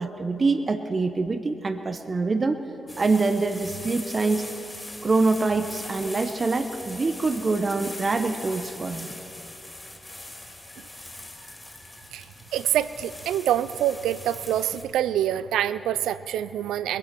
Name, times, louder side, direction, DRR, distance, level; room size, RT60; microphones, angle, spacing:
voice 1, 0.0-2.6 3.0-4.5 5.0-9.2, right 3 dB, 45° right, 8 dB, 0.8 m, -25 dB
sound 1, 2.9-14.8, left 1 dB, 20° left, 3.0 m, -41 dB
voice 2, 12.5-17.0, right 11 dB, 80° right, 16 dB, 0.3 m, -26 dB
21.0 x 11.0 x 4.5 m, 2.9 s
hypercardioid pair, 45°, 0 cm